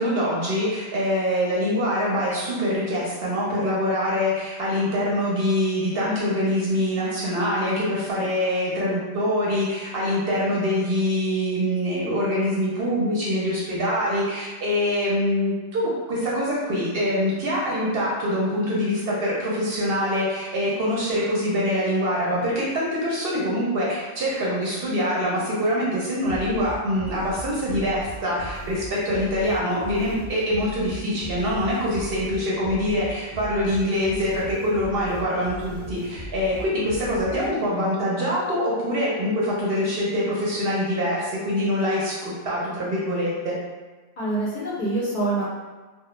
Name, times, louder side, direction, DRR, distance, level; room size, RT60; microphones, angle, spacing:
voice 1, 0.0-43.6, equal, 60° right, -5 dB, 0.7 m, -24 dB
sound 1, 26.2-37.8, equal, 15° left, 0.7 m, -38 dB
voice 2, 44.2-45.4, right 2 dB, 55° left, -8 dB, 0.6 m, -25 dB
2.2 x 2.0 x 3.0 m, 1.3 s
omnidirectional pair, 1.3 m